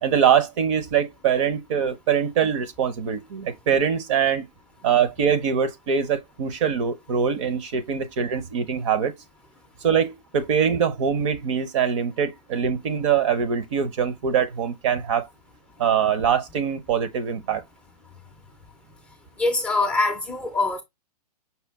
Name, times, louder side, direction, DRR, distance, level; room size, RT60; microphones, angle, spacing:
voice 1, 0.0-4.4 4.8-9.1 9.8-15.3 15.8-17.6, right 7 dB, 50° right, 0.7 m, -23 dB
voice 2, 19.4-20.8, left 3 dB, 5° left, 0.4 m, -23 dB
5.6 x 2.3 x 3.4 m
hypercardioid pair, 155°, 21 cm